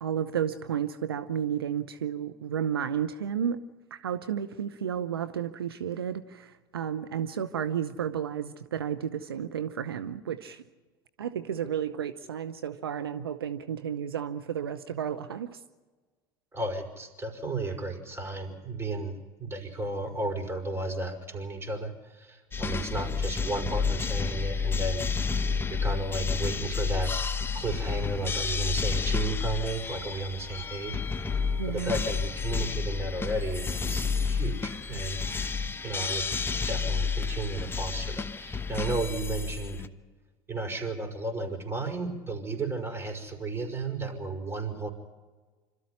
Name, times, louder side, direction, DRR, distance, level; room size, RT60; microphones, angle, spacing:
voice 1, 0.0-3.6 3.9-10.6 11.2-15.6 31.6-32.0, right 8 dB, 85° right, 11 dB, 0.8 m, -32 dB
voice 2, 16.5-25.1 25.3-25.4 25.7-27.1 27.5-31.3 31.7-35.2 35.8-36.2 36.7-39.8 40.5-44.9, right 2 dB, 20° right, 4 dB, 5.5 m, -33 dB
sound 1, 22.5-39.9, left 5 dB, 20° left, 1.1 m, -30 dB
26.0 x 13.5 x 9.7 m, 1.3 s
hypercardioid pair, 75°, 12 cm